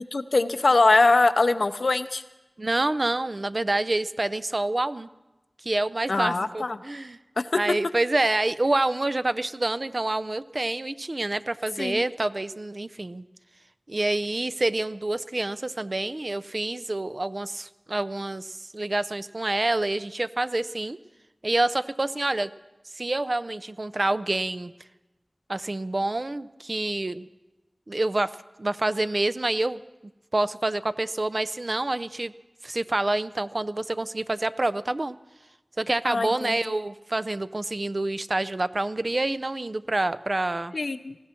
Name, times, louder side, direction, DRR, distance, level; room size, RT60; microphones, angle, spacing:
voice 1, 0.0-2.2 6.1-6.8 7.4-7.5 11.8-12.0 36.0-36.7 40.7-41.2, left 3 dB, 80° left, 11 dB, 0.6 m, -22 dB
voice 2, 2.6-5.1 5.6-7.2 7.6-13.3 13.9-21.0 21.4-22.5 23.0-24.7 25.5-27.3 27.9-28.3 28.6-29.8 30.3-32.3 32.6-35.2 35.8-40.7, right 2 dB, 50° right, 14 dB, 0.5 m, -27 dB
19.0 x 15.0 x 4.4 m, 1.1 s
wide cardioid pair, 60°, 0 cm